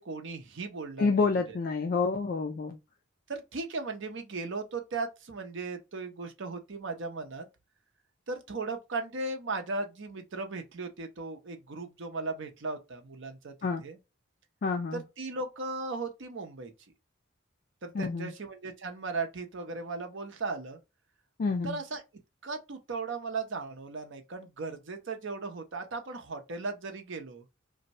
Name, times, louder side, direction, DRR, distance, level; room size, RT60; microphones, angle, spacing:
voice 1, 0.0-1.6 3.3-7.5 8.3-13.5 13.8-14.0 14.9-16.7 17.8-20.8 21.6-22.0 22.4-27.5, right 3 dB, 65° right, 0.6 m, -37 dB
voice 2, 1.0-2.8 13.6-13.8 14.6-15.0 17.9-18.3 21.4-21.8, left 4 dB, 45° left, 0.3 m, -28 dB
2.6 x 2.1 x 4.0 m
head